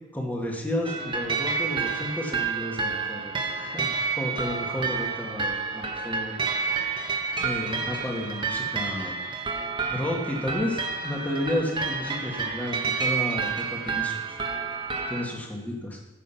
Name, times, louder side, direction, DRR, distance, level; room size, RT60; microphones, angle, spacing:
voice 1, 0.1-3.3 3.7-6.3 7.4-9.1 9.9-14.4 15.1-16.0, left 1 dB, 10° left, -1 dB, 1.9 m, -32 dB
sound 1, 0.8-15.2, right 5 dB, 25° right, 1.2 m, -29 dB
14.5 x 6.6 x 5.7 m, 1.2 s
head